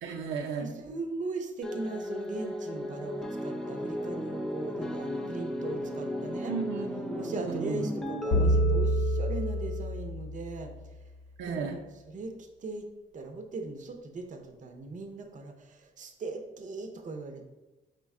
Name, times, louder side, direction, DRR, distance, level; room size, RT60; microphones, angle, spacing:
voice 1, 0.0-0.7 6.5-7.9 11.4-11.8, right 5 dB, 85° right, 1 dB, 0.6 m, -35 dB
voice 2, 0.6-6.6 7.2-10.7 11.4-11.8 12.1-12.9 13.1-17.5, right 3 dB, 40° right, 4 dB, 0.6 m, -39 dB
sound 1, 1.6-10.1, left 1 dB, ahead, 0.4 m, -35 dB
sound 2, 8.3-10.8, right 1 dB, 60° left, 0.7 m, -27 dB
5.0 x 2.1 x 3.5 m, 1.1 s
cardioid pair, 90°, 20 cm